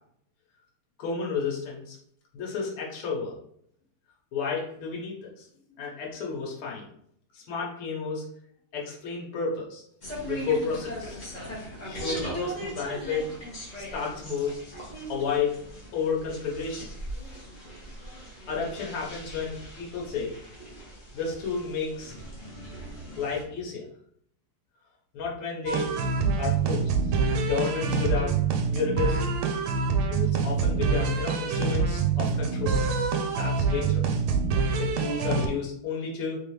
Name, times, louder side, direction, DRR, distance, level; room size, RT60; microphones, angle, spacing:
voice 1, 1.0-2.0 2.3-3.4 4.3-5.5 5.7-6.9 7.3-8.3 8.7-9.8 10.3-11.2 11.9-13.4 13.7-14.6 15.1-15.6 15.9-16.9 18.5-20.4 21.1-22.2 23.2-23.9 25.1-26.1 26.4-28.4 28.7-29.4 30.1-32.8 33.3-34.2 34.8-36.4, left 5 dB, 90° left, -3 dB, 1.8 m, -31 dB
sound 1, 10.0-23.4, right 1 dB, 30° left, 0.9 m, -39 dB
sound 2, 25.7-35.5, right 5 dB, 80° right, 1.4 m, -26 dB
3.7 x 3.5 x 3.0 m, 0.68 s
omnidirectional pair, 2.3 m